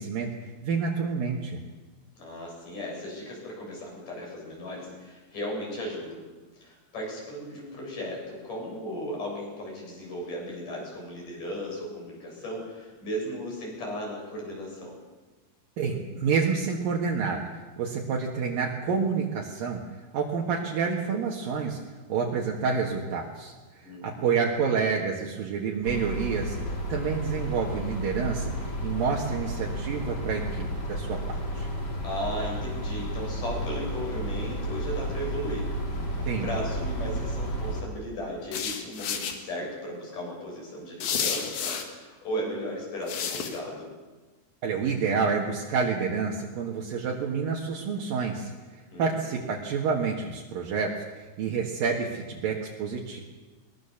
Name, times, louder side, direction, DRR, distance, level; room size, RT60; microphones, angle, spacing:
voice 1, 0.0-1.6 15.8-19.8 20.1-21.8 22.1-26.6 26.9-31.7 36.3-36.5 44.6-48.5 49.0-53.2, right 5 dB, 65° right, -1 dB, 3.3 m, -28 dB
voice 2, 2.2-6.3 6.5-15.0 23.8-24.3 32.0-35.6 36.1-43.9 48.9-49.0 49.4-49.5, equal, 55° left, -2 dB, 9.0 m, -36 dB
sound 1, 25.8-37.8, right 1 dB, 25° left, 3.5 m, -32 dB
sound 2, 38.5-39.3 41.0-41.8 43.1-43.6, left 7 dB, 75° left, 3.8 m, -30 dB
21.5 x 21.0 x 7.2 m, 1.3 s
omnidirectional pair, 4.4 m